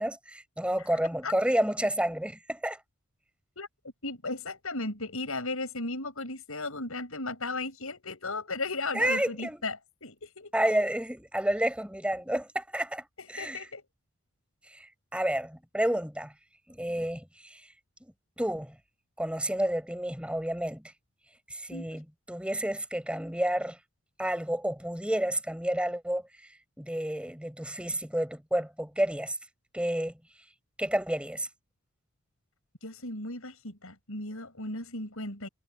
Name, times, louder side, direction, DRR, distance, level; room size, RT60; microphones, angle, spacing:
voice 1, 0.0-2.8 8.9-9.6 10.5-13.6 14.7-16.3 16.7-17.7 18.0-18.8 19.2-20.9 21.5-23.8 24.2-26.2 26.8-29.4 29.7-30.1 30.8-31.5, right 1 dB, 5° right, 5.1 m, -30 dB
voice 2, 4.0-10.5 13.2-13.8 21.7-22.0 32.8-35.5, left 2 dB, 70° left, 7.5 m, -36 dB
head